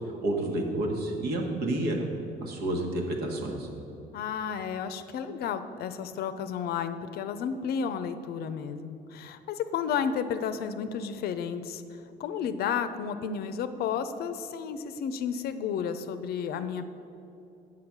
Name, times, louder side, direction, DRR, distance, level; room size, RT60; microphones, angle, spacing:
voice 1, 0.2-2.0 2.4-3.7, right 1 dB, 70° right, 2 dB, 1.4 m, -29 dB
voice 2, 4.1-16.9, left 7 dB, 65° left, 11 dB, 0.6 m, -32 dB
7.9 x 6.0 x 6.0 m, 2.7 s
cardioid pair, 110°, 17 cm